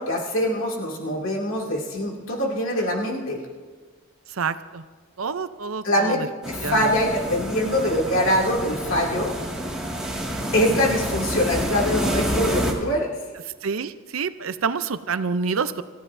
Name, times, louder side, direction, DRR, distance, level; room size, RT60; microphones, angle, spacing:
voice 1, 0.0-3.4 5.8-6.2 6.5-9.3 10.5-13.1, equal, 70° left, -2 dB, 2.6 m, -23 dB
voice 2, 4.3-4.8 5.2-6.3 6.6-7.0 13.6-15.8, right 5 dB, 75° right, 12 dB, 0.6 m, -27 dB
sound 1, 6.4-12.7, equal, 5° right, 2.0 m, -28 dB
26.0 x 15.0 x 2.7 m, 1.5 s
head